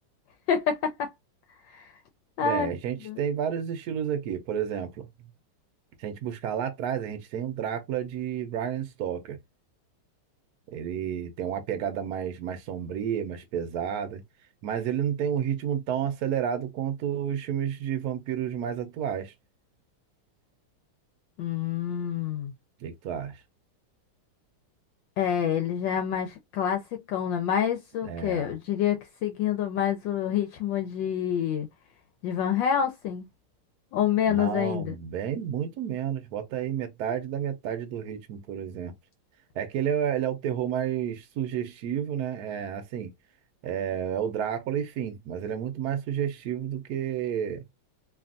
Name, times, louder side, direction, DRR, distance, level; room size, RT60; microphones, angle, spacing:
voice 1, 0.5-1.1 1.7-1.9 2.4-2.8 3.0-3.2 21.4-22.5 25.2-31.7 32.2-33.3 33.9-34.9, left 8 dB, 75° left, 1.1 m, -27 dB
voice 2, 2.4-5.3 6.0-9.4 10.7-14.2 14.6-19.3 22.8-23.4 28.0-28.5 34.3-38.9 39.5-43.1 43.6-47.6, right 9 dB, 70° right, 0.9 m, -31 dB
3.4 x 2.4 x 2.4 m
omnidirectional pair, 2.4 m